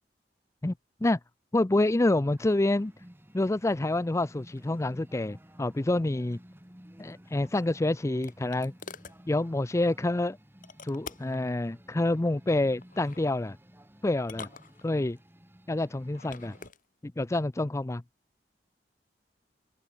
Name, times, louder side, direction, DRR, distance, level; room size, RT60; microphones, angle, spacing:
voice 1, 1.5-2.9 3.3-6.4 7.0-8.7 9.3-10.4 10.8-13.6 14.0-14.5 14.8-15.2 15.7-16.6 17.0-18.0, left 2 dB, 15° left, 0.5 m, -27 dB
sound 1, 2.4-16.7, equal, 15° right, 2.6 m, -54 dB
sound 2, 7.4-9.2 10.6-11.5 12.8-13.2 14.2-15.2 16.0-16.8, left 5 dB, 50° left, 4.4 m, -46 dB
open air
head